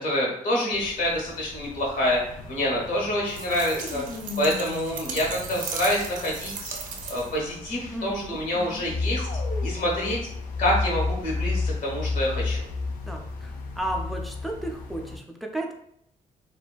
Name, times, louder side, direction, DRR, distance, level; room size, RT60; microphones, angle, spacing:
voice 1, 0.0-2.2 2.5-4.0 4.4-6.8 7.1-9.3 9.6-10.2 10.6-12.6, left 1 dB, 70° left, -3 dB, 0.9 m, -27 dB
sound 1, 0.7-15.2, left 3 dB, 90° left, 0.4 m, -33 dB
sound 2, 3.3-7.5, right 6 dB, 70° right, 0.4 m, -37 dB
sound 3, 3.5-6.0 9.1-10.1, left 2 dB, 45° left, 0.7 m, -38 dB
voice 2, 7.9-8.9 13.0-15.7, right 1 dB, ahead, 1 dB, 0.3 m, -34 dB
2.5 x 2.2 x 2.2 m, 0.69 s
cardioid pair, 125°, 14 cm